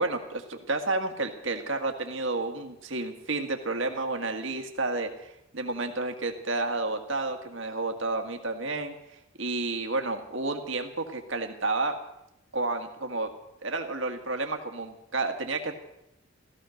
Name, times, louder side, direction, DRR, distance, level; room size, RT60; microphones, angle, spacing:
voice 1, 0.0-12.0 12.5-13.3 13.6-15.7, right 3 dB, 60° right, 5 dB, 1.8 m, -31 dB
15.0 x 15.0 x 6.4 m, 0.81 s
head